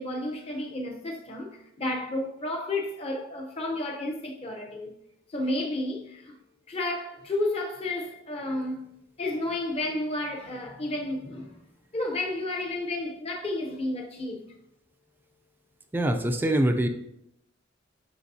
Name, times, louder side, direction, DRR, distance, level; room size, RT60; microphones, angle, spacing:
voice 1, 0.0-4.9 5.3-6.4 6.7-8.9 9.2-11.6 11.9-14.4, left 1 dB, 30° left, 0.7 m, -31 dB
voice 2, 15.9-16.9, right 1 dB, 10° right, 0.4 m, -24 dB
7.9 x 6.1 x 2.7 m
head